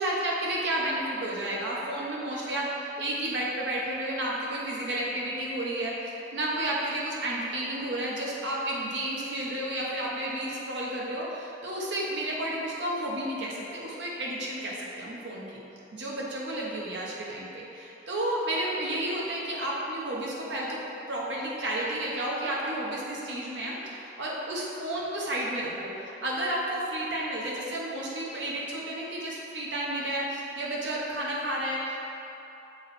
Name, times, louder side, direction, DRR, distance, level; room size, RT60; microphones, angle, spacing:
voice 1, 0.0-15.6 15.9-20.8 21.1-32.0, right 1 dB, 90° right, -4 dB, 1.2 m, -32 dB
6.5 x 4.0 x 4.3 m, 2.9 s
head